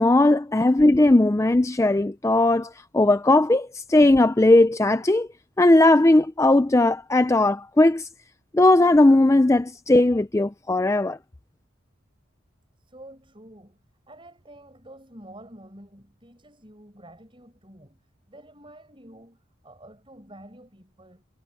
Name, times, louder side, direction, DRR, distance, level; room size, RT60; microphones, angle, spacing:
voice 1, 0.0-5.3 5.6-8.1 8.5-11.2, left 2 dB, 15° left, 0.4 m, -18 dB
voice 2, 12.8-21.2, right 1 dB, 25° right, 6.0 m, -48 dB
head